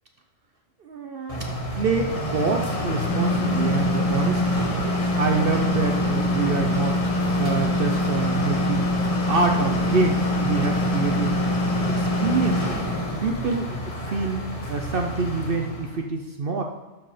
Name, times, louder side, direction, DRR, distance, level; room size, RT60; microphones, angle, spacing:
voice 1, 0.8-4.7 5.2-8.9 9.3-11.4 11.9-12.8 13.2-16.6, right 4 dB, 50° right, 3 dB, 0.8 m, -26 dB
sound 1, 1.3-16.0, left 1 dB, 30° left, 1.2 m, -25 dB
12.0 x 4.9 x 4.9 m, 1.2 s
omnidirectional pair, 1.3 m